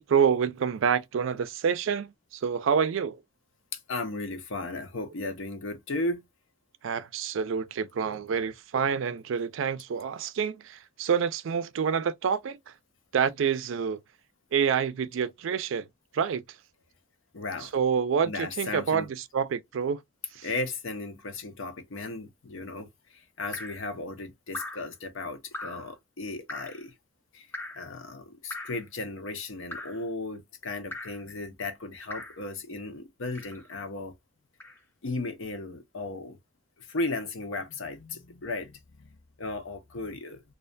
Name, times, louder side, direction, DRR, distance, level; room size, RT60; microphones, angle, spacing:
voice 1, 0.0-3.2 6.8-12.6 13.1-14.0 14.5-15.9 16.1-16.4 17.7-20.0 20.4-20.5, right 7 dB, 80° right, 0.4 m, -27 dB
voice 2, 3.7-6.2 17.3-17.7 18.2-19.1 20.4-26.9 27.3-27.5 27.8-34.1 35.0-36.4 36.8-40.4, left 2 dB, 85° left, 0.7 m, -35 dB
Drip, 23.5-23.9 24.5-24.9 25.5-25.9 26.5-26.8 27.5-27.9 28.5-28.9 29.7-30.0 30.9-31.2 32.1-32.4 33.3-33.7 34.6-34.8, left 2 dB, 10° left, 0.5 m, -40 dB
2.4 x 2.2 x 2.5 m
head